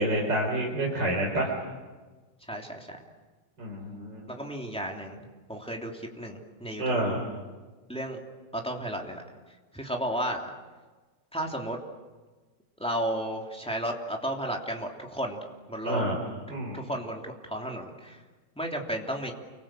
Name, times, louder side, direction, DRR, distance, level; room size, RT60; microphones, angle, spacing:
voice 1, 0.0-1.5 3.6-4.2 6.8-7.2 15.8-16.1 16.5-16.8, right 1 dB, 25° right, -2 dB, 4.5 m, -28 dB
voice 2, 2.5-3.0 4.3-5.2 5.5-7.0 7.9-8.2 8.5-9.2 9.7-10.5 11.3-11.8 12.8-15.4 15.7-16.0 16.7-18.2 18.6-19.3, right 1 dB, ahead, 0 dB, 2.3 m, -33 dB
30.0 x 24.5 x 7.6 m, 1.3 s
omnidirectional pair, 4.6 m